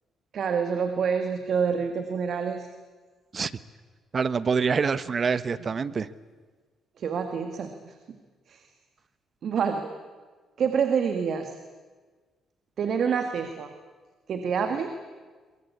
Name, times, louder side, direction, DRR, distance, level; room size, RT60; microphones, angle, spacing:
voice 1, 0.3-2.7 7.0-7.9 8.5-8.6 9.4-9.9 10.6-11.5 12.8-13.7 14.3-14.9, right 6 dB, 60° right, 7 dB, 2.0 m, -27 dB
voice 2, 4.1-6.1, right 5 dB, 40° right, 16 dB, 1.1 m, -26 dB
23.0 x 22.5 x 8.5 m, 1.4 s
cardioid pair, 90°, 0 cm